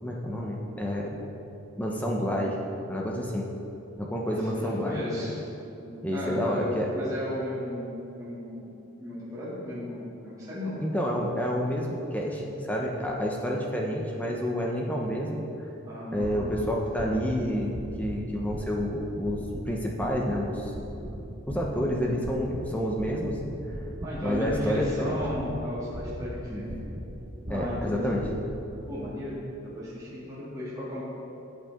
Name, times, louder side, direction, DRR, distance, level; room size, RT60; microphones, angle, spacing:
voice 1, 0.0-1.1 1.8-2.5 2.9-3.5 4.0-5.0 6.0-6.9 10.8-15.4 16.1-19.4 19.7-20.7 21.5-23.4 24.2-25.2 26.5-26.6 27.5-28.2, equal, 5° left, -2 dB, 0.9 m, -29 dB
voice 2, 4.3-5.3 5.8-8.7 9.0-10.8 15.8-16.6 24.0-26.7 27.5-28.3 28.9-31.0, left 1 dB, 15° right, -9 dB, 2.6 m, -35 dB
sound 1, 16.1-28.6, equal, 35° right, 1.1 m, -39 dB
14.0 x 8.3 x 3.7 m, 2.9 s
head